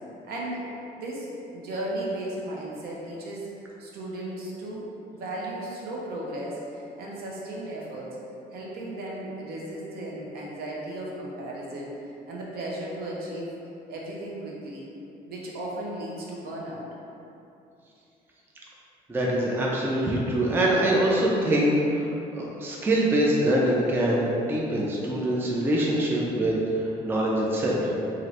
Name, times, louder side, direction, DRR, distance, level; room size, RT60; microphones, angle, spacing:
voice 1, 0.3-3.5 3.8-8.2 8.5-11.9 12.3-13.5 13.9-14.9 15.3-16.9 25.2-25.3, right 1 dB, 65° right, -4 dB, 0.7 m, -35 dB
voice 2, 19.1-22.1 22.4-26.5 27.0-27.9, right 1 dB, 15° right, -4 dB, 0.4 m, -24 dB
2.7 x 2.5 x 3.1 m, 2.7 s
cardioid pair, 110°, 17 cm